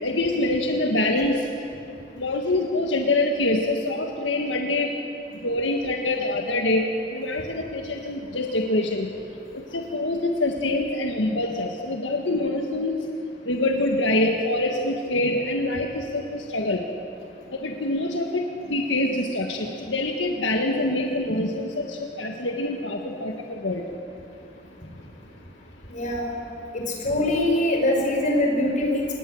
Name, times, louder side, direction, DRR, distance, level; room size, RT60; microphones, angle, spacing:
voice 1, 0.0-1.5 2.2-4.9 5.4-6.8 7.1-9.1 9.5-13.0 13.5-16.8 17.6-23.9, left 2 dB, 85° left, 2 dB, 1.7 m, -25 dB
voice 2, 25.9-26.4 26.7-29.2, left 1 dB, 45° left, 0 dB, 5.8 m, -23 dB
27.0 x 20.5 x 7.9 m, 2.7 s
head